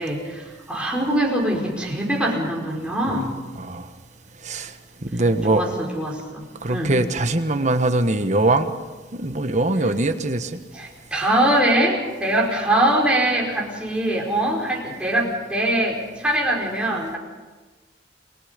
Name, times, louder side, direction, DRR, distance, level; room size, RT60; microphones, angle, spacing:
voice 1, 0.0-3.3 5.5-7.0 10.7-17.2, right 1 dB, 5° right, -2 dB, 4.9 m, -23 dB
voice 2, 5.0-5.6 6.6-8.7 9.1-10.6, right 2 dB, 45° right, 8 dB, 1.4 m, -22 dB
29.0 x 21.5 x 5.3 m, 1.3 s
head